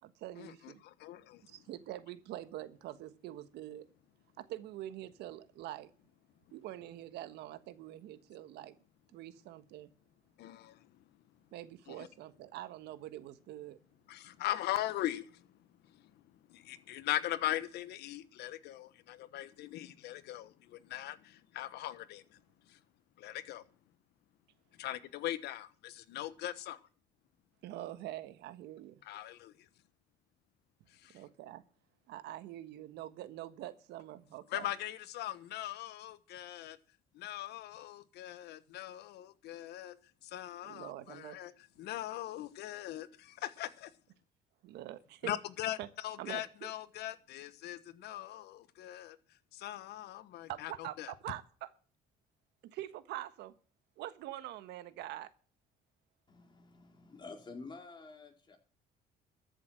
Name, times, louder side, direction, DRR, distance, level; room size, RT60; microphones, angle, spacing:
voice 1, 0.0-0.8 1.5-3.9 4.4-5.9 6.5-8.8 9.1-9.9 11.5-13.8 27.6-29.0 31.1-31.6 32.1-34.7 40.6-41.5 44.6-45.4 45.8-45.9 46.2-46.5 50.5-51.7 52.6-53.5 54.0-55.3, right 14 dB, 85° right, 1.4 m, -45 dB
voice 2, 0.8-1.4 10.4-10.9 11.9-12.1 14.1-15.5 15.9-16.2 16.5-22.4 22.7-22.8 23.2-23.6 24.8-26.8 29.1-29.5 30.9-31.2 34.5-36.8 37.1-40.0 40.2-41.5 41.8-43.9 45.2-45.8 46.0-49.2 49.5-50.7 51.0-51.1, left 13 dB, 80° left, 1.2 m, -40 dB
voice 3, 56.3-58.6, left 3 dB, 25° left, 3.9 m, -50 dB
14.0 x 7.2 x 7.8 m
cardioid pair, 110°, 17 cm